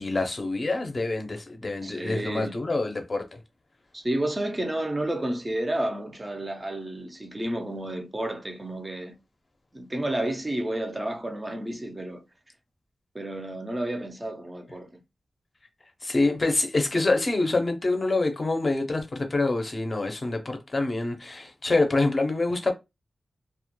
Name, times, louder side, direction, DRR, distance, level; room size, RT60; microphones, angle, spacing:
voice 1, 0.0-3.4 16.0-22.7, left 2 dB, 35° left, 0.5 m, -26 dB
voice 2, 1.8-2.5 3.9-9.2 9.7-12.2 13.1-15.0, right 1 dB, 20° right, 0.4 m, -31 dB
2.1 x 2.0 x 2.9 m
wide cardioid pair, 135°, 0 cm